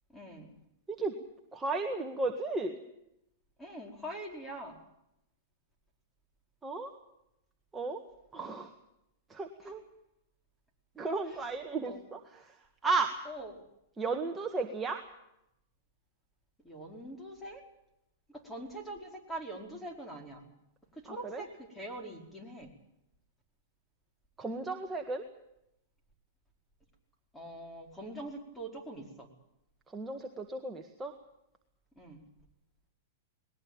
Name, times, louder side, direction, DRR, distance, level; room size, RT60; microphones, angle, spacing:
voice 1, 0.1-0.5 3.6-4.8 9.6-9.7 11.7-12.0 13.3-13.6 16.6-17.6 18.3-20.4 20.9-22.7 27.3-29.3 32.0-32.2, right 1 dB, 5° left, 2 dB, 4.7 m, -43 dB
voice 2, 1.5-2.8 6.6-6.9 7.7-8.0 8.3-8.7 9.3-9.8 11.0-13.3 14.0-15.0 21.1-21.4 24.4-25.2 29.9-31.1, right 3 dB, 15° right, 2 dB, 1.8 m, -34 dB
20.5 x 19.0 x 8.9 m, 0.83 s
hypercardioid pair, 135°, 0 cm